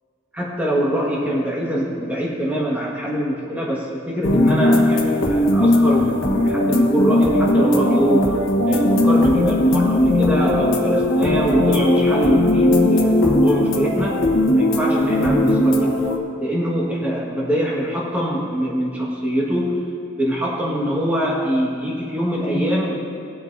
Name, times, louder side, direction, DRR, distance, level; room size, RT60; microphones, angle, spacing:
voice 1, 0.3-8.3 8.7-16.1 16.4-19.9 20.2-23.1, equal, 10° right, -5 dB, 1.6 m, -23 dB
sound 1, 4.2-16.2, left 1 dB, 70° left, 1.2 m, -18 dB
19.5 x 8.1 x 2.7 m, 2.8 s
head